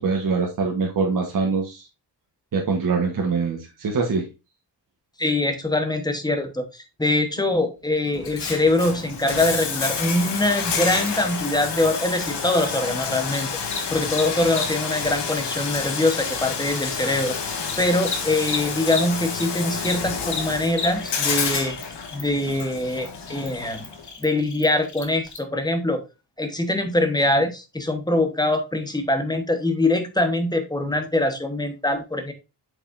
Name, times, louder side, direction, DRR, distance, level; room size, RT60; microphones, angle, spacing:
voice 1, 0.0-1.9 2.5-4.3, right 4 dB, 50° right, -1 dB, 1.3 m, -23 dB
voice 2, 5.2-21.8 22.1-23.8 24.2-26.0 26.4-32.3, left 2 dB, 10° left, 6 dB, 1.1 m, -23 dB
Bathtub (filling or washing), 8.1-24.1, left 5 dB, 70° left, 1.6 m, -29 dB
Cricket, 9.8-19.4 19.7-25.4, left 4 dB, 45° left, 1.4 m, -36 dB
7.4 x 5.4 x 2.6 m, 0.26 s
wide cardioid pair, 150°, 42 cm